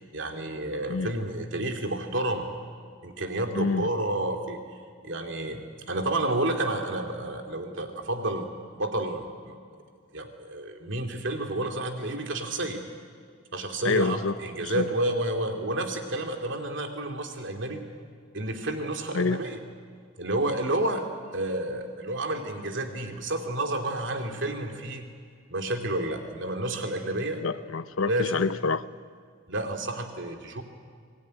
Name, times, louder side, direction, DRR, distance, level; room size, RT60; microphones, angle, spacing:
voice 1, 0.1-2.5 3.0-4.6 5.0-8.5 8.8-9.6 10.1-12.8 13.5-17.8 18.3-19.6 20.2-21.1 21.3-25.1 25.5-27.4 28.1-28.4 29.5-30.6, right 1 dB, 65° right, 2.7 m, -30 dB
voice 2, 3.5-3.9 13.8-14.3 14.6-14.9 19.1-19.4 27.4-28.8, left 4 dB, 90° left, 0.8 m, -27 dB
24.0 x 18.0 x 9.6 m
head